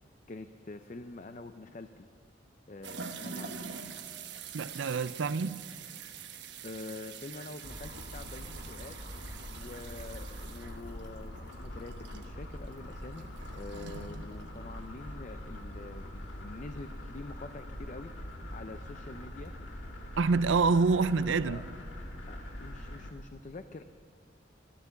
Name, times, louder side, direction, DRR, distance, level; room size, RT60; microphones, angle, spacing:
voice 1, 0.3-2.1 2.7-3.7 6.6-9.0 9.6-19.5 21.4-21.6 22.3-23.8, left 2 dB, 40° left, 0.5 m, -46 dB
sound 1, 2.8-15.2 15.5-15.6 17.6-17.7 19.4-19.5 21.1-21.2 22.1-22.2, right 6 dB, 65° right, 1.1 m, -46 dB
voice 2, 4.5-5.6 20.2-21.6, right 4 dB, 85° right, 0.5 m, -26 dB
sound 2, 7.6-23.1, left 1 dB, 80° left, 2.0 m, -43 dB
14.5 x 13.0 x 7.1 m
head